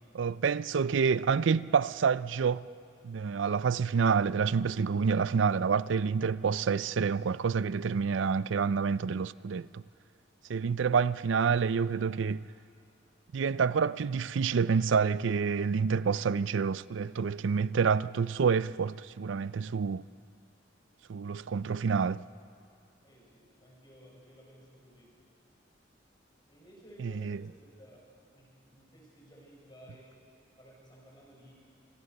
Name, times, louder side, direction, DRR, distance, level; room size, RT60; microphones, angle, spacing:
voice 1, 0.1-2.7 3.0-9.8 10.5-12.5 13.3-20.0 21.1-22.2 27.0-27.4, right 6 dB, 75° right, 0.4 m, -28 dB
voice 2, 23.0-25.2 26.5-30.1 30.6-31.5, equal, 25° left, 6.2 m, -56 dB
25.5 x 18.0 x 6.8 m
head